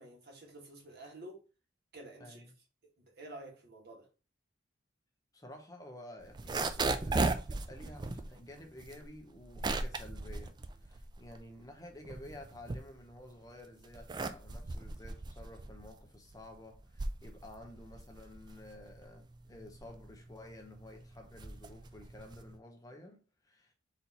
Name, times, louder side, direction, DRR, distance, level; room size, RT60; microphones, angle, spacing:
voice 1, 0.0-1.4 1.9-2.4 3.0-4.1, right 1 dB, 55° right, 1.4 m, -50 dB
voice 2, 5.3-23.7, left 1 dB, 20° left, 0.7 m, -52 dB
sound 1, 6.2-11.5 11.9-13.3 13.8-22.6, right 3 dB, 25° right, 0.3 m, -37 dB
4.3 x 2.8 x 4.0 m
head